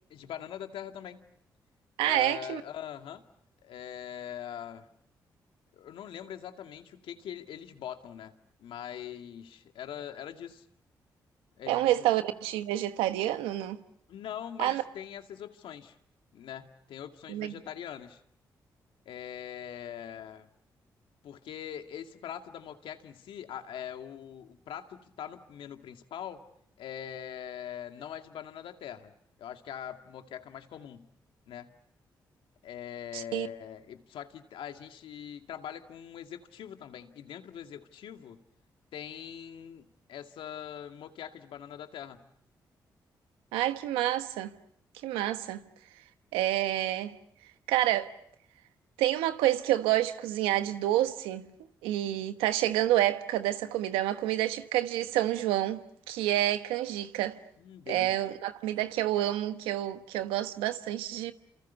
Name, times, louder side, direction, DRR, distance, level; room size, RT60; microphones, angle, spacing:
voice 1, 0.1-1.3 2.0-3.2 3.6-4.9 5.7-8.3 8.6-10.6 11.6-12.1 14.1-16.0 16.3-18.2 19.1-20.5 21.2-26.4 26.8-29.1 29.4-31.1 31.5-31.7 32.6-38.4 38.9-42.3 57.6-58.2, left 9 dB, 75° left, 2.2 m, -42 dB
voice 2, 2.0-2.6 11.7-13.8 14.6-14.8 17.3-17.5 33.1-33.5 43.5-44.5 45.0-45.6 46.3-47.1 47.7-48.1 49.0-51.5 51.8-55.8 56.1-57.4 57.9-61.3, right 13 dB, 90° right, 1.2 m, -28 dB
29.5 x 28.0 x 7.0 m
supercardioid pair, 45°, 9 cm